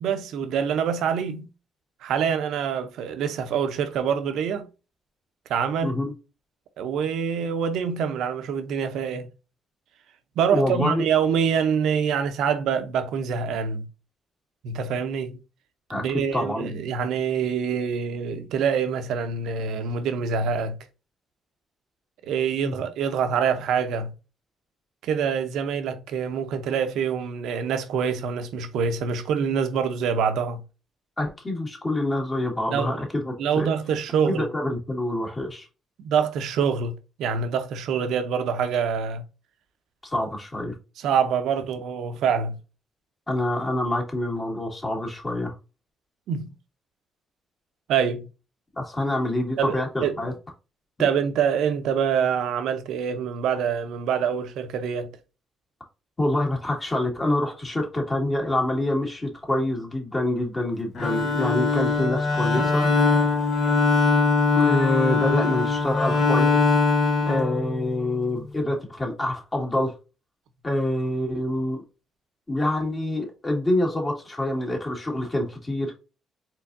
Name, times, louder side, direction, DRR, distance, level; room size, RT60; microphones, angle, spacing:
voice 1, 0.0-1.5 2.0-4.7 5.5-5.9 6.8-9.3 10.4-13.9 14.6-15.4 15.9-20.8 22.2-24.1 25.0-30.6 32.7-33.0 33.4-34.5 36.0-39.2 41.0-42.6 46.3-46.5 47.9-48.3 49.6-50.3 51.0-55.1, right 7 dB, 80° right, 0.7 m, -25 dB
voice 2, 5.8-6.1 10.5-11.0 15.9-16.1 16.3-16.7 22.6-22.7 31.2-33.7 34.3-35.7 40.0-40.7 43.3-45.6 48.8-50.3 51.0-51.1 56.2-62.9 64.5-66.8 67.3-69.9 70.6-71.8 72.5-75.9, left 1 dB, 25° left, 2.0 m, -26 dB
Bowed string instrument, 61.0-68.1, left 3 dB, 60° left, 1.4 m, -22 dB
4.5 x 3.7 x 2.6 m
cardioid pair, 90°, 0 cm